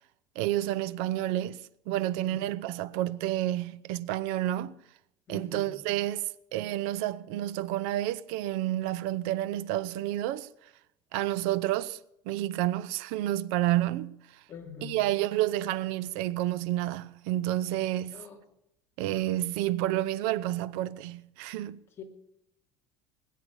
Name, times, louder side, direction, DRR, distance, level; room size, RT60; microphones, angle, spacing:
voice 1, 0.4-4.8 5.3-10.5 11.1-12.0 12.3-14.4 14.8-18.2 19.0-21.8, right 14 dB, 80° right, 0.7 m, -30 dB
voice 2, 5.3-5.7 14.5-15.0 18.1-18.3 22.0-22.1, left 7 dB, 25° left, 2.8 m, -44 dB
20.5 x 8.5 x 7.2 m
cardioid pair, 160°, 10 cm